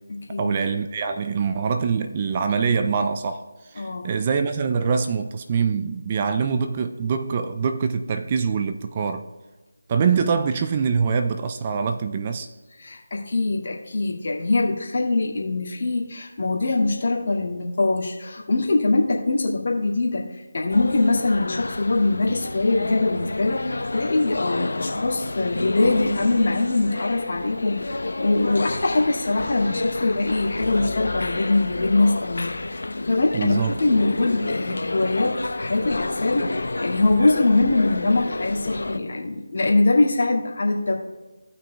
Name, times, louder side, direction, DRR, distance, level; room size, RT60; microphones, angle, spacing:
voice 1, 0.4-3.4 3.7-9.2 9.9-12.5 33.3-33.7, right 6 dB, 25° right, 7 dB, 0.4 m, -24 dB
voice 2, 3.8-4.1 12.8-40.9, left 2 dB, 50° left, -2 dB, 1.9 m, -23 dB
sound 1, 20.7-39.0, left 2 dB, 70° left, 0.7 m, -30 dB
17.5 x 6.1 x 2.3 m, 1.2 s
figure-of-eight pair, 160°, 0 cm